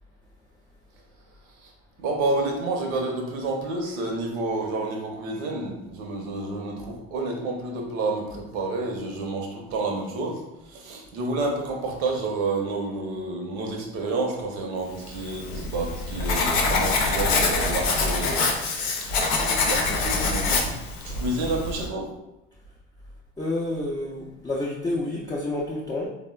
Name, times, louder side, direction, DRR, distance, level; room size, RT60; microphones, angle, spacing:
voice 1, 2.0-18.6 18.8-22.1, right 2 dB, 70° right, 1 dB, 0.7 m, -29 dB
Writing, 15.1-21.9, left 3 dB, 75° left, 0.6 m, -25 dB
voice 2, 23.4-26.1, left 2 dB, 10° left, -4 dB, 0.4 m, -29 dB
3.4 x 2.0 x 2.3 m, 0.92 s
hypercardioid pair, 65°, 32 cm